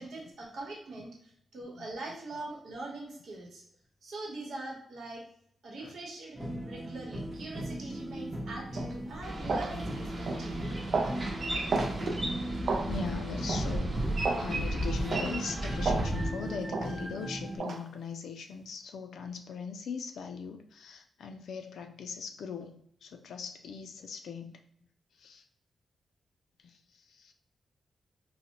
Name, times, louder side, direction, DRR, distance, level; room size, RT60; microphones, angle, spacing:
voice 1, 0.0-3.6 4.0-5.2 5.6-10.7, right 2 dB, 80° right, -1 dB, 1.0 m, -42 dB
sound 1, 6.3-17.6, right 1 dB, 5° right, 0.6 m, -39 dB
sound 2, 8.8-8.9 9.5-9.7 10.3-10.5 10.9-11.2 11.7-11.9 12.7-12.9 13.5-13.7 14.2-14.5 15.1-15.3 15.8-16.1 16.7-16.9 17.6-17.8, right 3 dB, 60° right, 0.5 m, -31 dB
Boat Water vehicle, 9.2-16.3, right 1 dB, 40° right, 0.8 m, -34 dB
voice 2, 11.6-14.0 14.4-24.6 25.1-25.4 26.6-27.3, left 6 dB, 85° left, 6 dB, 0.3 m, -41 dB
4.0 x 2.1 x 2.8 m, 0.68 s
wide cardioid pair, 110°, 0 cm